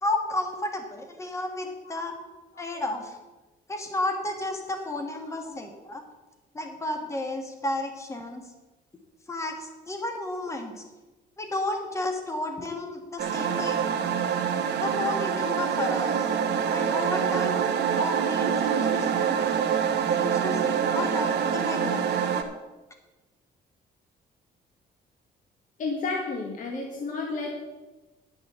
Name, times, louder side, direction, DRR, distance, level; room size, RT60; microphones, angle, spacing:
voice 1, 0.0-2.1 2.6-3.2 3.7-6.0 6.5-8.4 9.3-10.8 11.4-14.1 14.8-16.3 16.7-17.6 18.0-19.4 20.2-22.1, left 2 dB, 15° left, 4 dB, 1.5 m, -32 dB
sound 1, 13.2-22.4, right 7 dB, 70° right, 1.2 m, -25 dB
voice 2, 25.8-27.6, left 3 dB, 45° left, 0 dB, 1.6 m, -31 dB
10.5 x 7.0 x 6.8 m, 1.1 s
cardioid pair, 175°, 18 cm